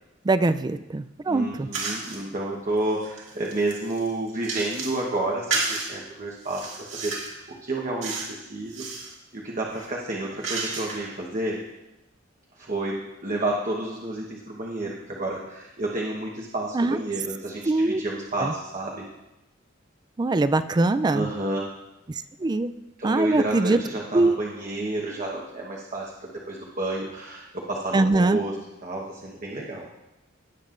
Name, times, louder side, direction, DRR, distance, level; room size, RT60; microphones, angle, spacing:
voice 1, 0.2-1.7 16.7-17.0 17.7-18.0 18.4-18.5 20.2-21.3 22.1-22.7 23.0-23.8 24.1-24.4 27.9-28.4, right 2 dB, 20° right, 12 dB, 0.3 m, -22 dB
voice 2, 1.3-8.9 9.3-11.6 12.6-19.0 21.1-21.7 23.0-28.5 28.8-29.9, right 2 dB, 40° right, -2 dB, 1.2 m, -30 dB
sound 1, 1.7-2.2 2.8-5.0 5.5-5.9 6.4-7.4 8.0-8.4 8.6-9.1 9.7-11.2, right 4 dB, 70° right, 2.3 m, -32 dB
18.0 x 7.5 x 2.5 m, 0.95 s
head